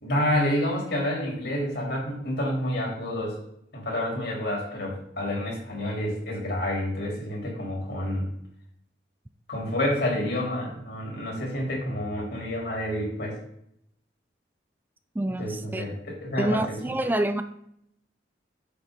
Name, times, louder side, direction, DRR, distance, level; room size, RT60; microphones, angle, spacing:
voice 1, 0.0-3.4 3.7-8.3 9.5-13.4 15.4-16.8, left 1 dB, 65° left, -2 dB, 3.7 m, -29 dB
voice 2, 15.1-15.8 16.4-17.4, right 1 dB, 10° right, 10 dB, 0.4 m, -27 dB
8.7 x 7.0 x 3.9 m, 0.74 s
head